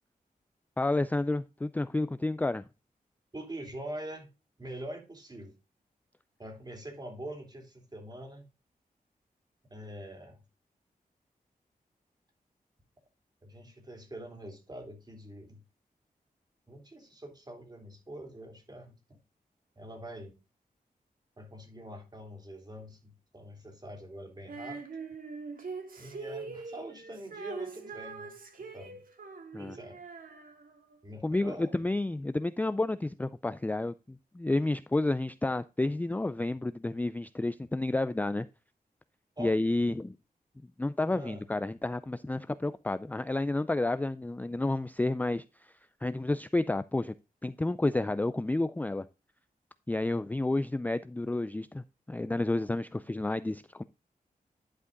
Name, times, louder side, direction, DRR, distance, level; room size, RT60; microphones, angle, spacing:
voice 1, 0.8-2.6 29.5-29.8 31.2-33.9 34.3-38.5 39.4-40.1 40.8-45.4 46.0-47.1 47.4-49.1 49.9-53.8, left 2 dB, 10° left, 0.4 m, -30 dB
voice 2, 3.3-4.3 4.6-5.5 6.4-8.5 9.7-10.4 13.4-15.6 16.7-18.9 19.8-20.4 21.4-24.8 26.0-29.0 29.6-30.0 31.0-31.8 39.4-39.5 41.1-41.4, right 1 dB, 25° right, 2.9 m, -44 dB
Female singing, 24.5-31.0, right 4 dB, 70° right, 1.9 m, -43 dB
11.0 x 4.9 x 3.8 m
wide cardioid pair, 90°, 15 cm